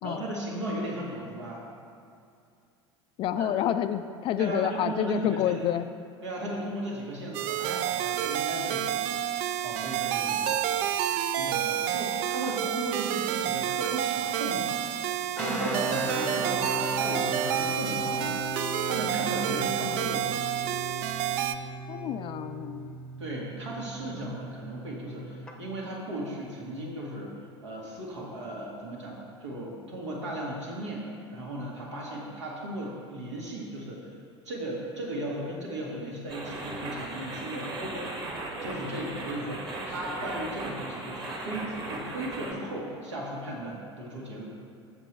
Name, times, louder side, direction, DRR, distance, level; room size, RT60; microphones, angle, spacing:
voice 1, 0.0-1.6 3.3-3.5 4.4-5.6 6.2-9.2 9.6-10.8 11.4-14.9 15.1-18.3 18.6-20.5 23.2-27.3 27.6-34.2 34.4-38.2 38.6-44.4, right 1 dB, 75° right, -4 dB, 1.8 m, -36 dB
voice 2, 3.2-5.8 12.6-12.8 21.9-23.0, left 10 dB, 35° left, 11 dB, 0.3 m, -29 dB
sound 1, 7.3-21.6, right 11 dB, 50° right, 0.4 m, -29 dB
sound 2, 15.4-25.5, equal, 5° left, 0.8 m, -37 dB
sound 3, 36.3-42.5, right 2 dB, 30° right, 1.6 m, -37 dB
7.2 x 6.5 x 4.4 m, 2.4 s
figure-of-eight pair, 75°, 15 cm